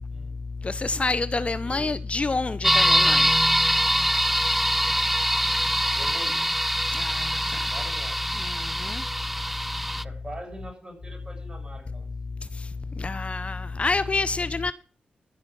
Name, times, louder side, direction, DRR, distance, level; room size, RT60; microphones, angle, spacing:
voice 1, 0.1-0.4 1.6-2.0 2.7-3.3 5.9-6.5 7.6-8.2 9.9-12.1, right 1 dB, 25° right, 7.6 m, -43 dB
voice 2, 0.6-3.3 6.9-7.4 8.4-9.0 13.0-14.7, left 3 dB, 35° left, 0.6 m, -27 dB
sound 1, 2.6-10.0, equal, 5° right, 0.4 m, -24 dB
13.5 x 5.6 x 6.9 m
supercardioid pair, 45°, 3 cm